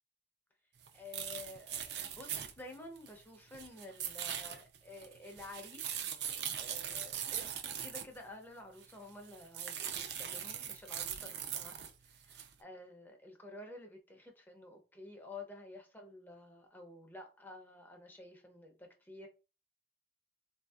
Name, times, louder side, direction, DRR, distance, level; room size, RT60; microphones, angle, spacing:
sound 1, 0.8-3.2 3.5-8.2 8.8-8.9 9.2-11.9 12.3-12.5, right 9 dB, 65° right, 0.5 m, -41 dB
voice 1, 0.9-5.9 6.6-11.8 12.0-19.3, left 2 dB, 10° left, 0.6 m, -51 dB
3.7 x 2.6 x 2.3 m
head